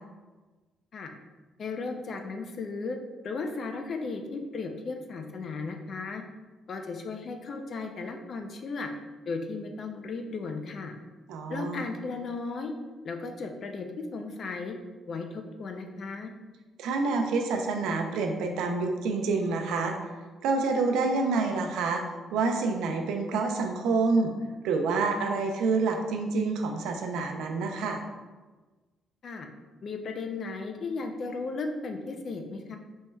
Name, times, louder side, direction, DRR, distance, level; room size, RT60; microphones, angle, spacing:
voice 1, 1.6-3.0 3.2-6.2 6.7-8.9 9.3-10.9 11.5-12.7 13.0-14.8 15.1-16.3 29.2-29.5 29.8-32.8, left 4 dB, 55° left, 5 dB, 0.5 m, -35 dB
voice 2, 11.3-11.8 16.8-20.0 20.4-22.0 22.3-24.3 24.6-28.0, right 4 dB, 90° right, 4 dB, 0.4 m, -27 dB
4.4 x 3.0 x 2.3 m, 1.3 s
cardioid pair, 90°, 0 cm